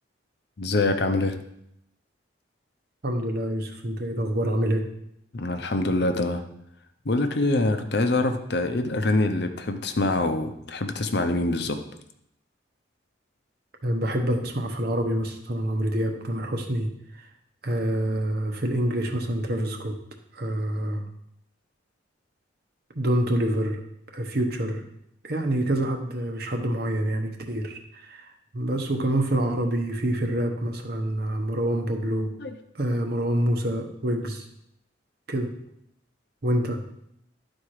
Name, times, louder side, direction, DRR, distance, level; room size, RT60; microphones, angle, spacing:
voice 1, 0.6-1.3 5.3-6.4 7.0-11.8 32.4-32.5, left 2 dB, 55° left, 7 dB, 0.7 m, -25 dB
voice 2, 3.0-4.8 13.8-17.3 17.6-20.0 20.3-21.0 23.0-23.8 24.1-24.8 25.2-32.3 32.7-34.5 35.3-35.5 36.4-36.8, right 1 dB, 50° right, 3 dB, 1.0 m, -26 dB
11.5 x 4.4 x 4.8 m, 0.77 s
head